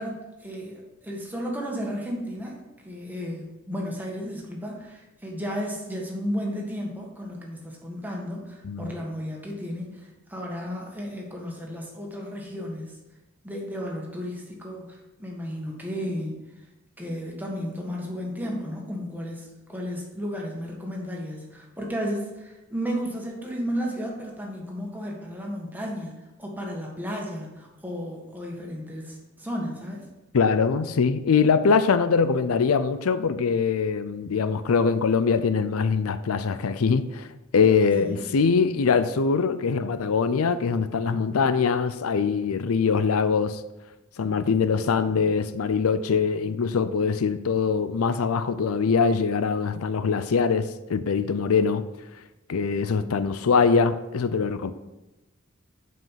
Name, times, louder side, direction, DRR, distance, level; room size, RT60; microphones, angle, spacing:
voice 1, 0.0-13.0 13.4-16.4 17.0-30.0 37.9-38.2, equal, 10° right, 1.6 m, -33 dB
voice 2, 30.3-37.3 37.5-43.6 44.2-51.8 52.5-54.7, left 5 dB, 90° left, 0.5 m, -23 dB
7.6 x 5.5 x 5.7 m
head